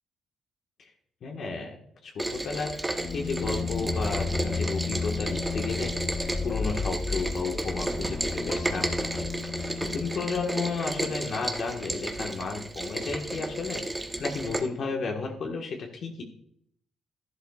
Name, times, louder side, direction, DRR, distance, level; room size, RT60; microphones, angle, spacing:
voice 1, 1.2-1.8 2.0-5.9 6.4-9.3 9.8-16.2, left 4 dB, 60° left, 1 dB, 1.5 m, -33 dB
Rain, 2.2-14.6, right 2 dB, 15° right, 1.1 m, -33 dB
sound 1, 2.9-11.5, left 4 dB, 40° left, 0.6 m, -33 dB
12.5 x 11.0 x 2.4 m, 0.71 s
cardioid pair, 90°, 0 cm